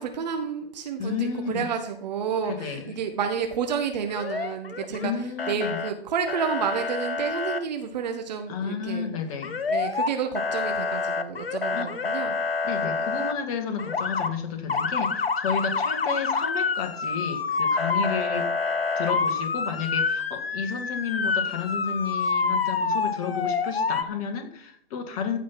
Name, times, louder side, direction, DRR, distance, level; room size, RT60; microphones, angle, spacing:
voice 1, 0.0-9.1 9.7-12.4, right 7 dB, 45° right, 1.5 m, -30 dB
voice 2, 1.0-1.7 2.5-2.9 5.0-5.8 8.5-9.6 11.7-11.9 12.6-18.5 19.0-25.4, left 6 dB, 35° left, 2.0 m, -31 dB
Motor vehicle (road) / Siren, 4.1-5.1 5.4-5.9 6.3-7.6 9.4-10.1 10.4-13.3 13.8-14.3 14.7-24.0, left 4 dB, 70° left, 1.2 m, -27 dB
15.0 x 5.6 x 5.8 m
figure-of-eight pair, 125°, 31 cm